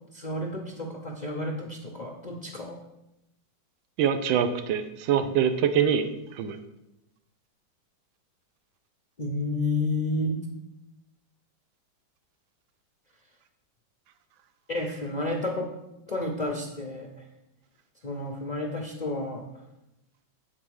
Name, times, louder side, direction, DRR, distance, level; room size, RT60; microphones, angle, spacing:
voice 1, 0.0-2.8 9.2-10.4 14.7-15.7 16.1-17.1 18.0-19.4, left 2 dB, 85° left, 0 dB, 0.3 m, -31 dB
voice 2, 4.0-6.1 6.3-6.6, right 8 dB, 80° right, 9 dB, 1.5 m, -24 dB
9.0 x 4.1 x 6.3 m, 0.90 s
omnidirectional pair, 2.2 m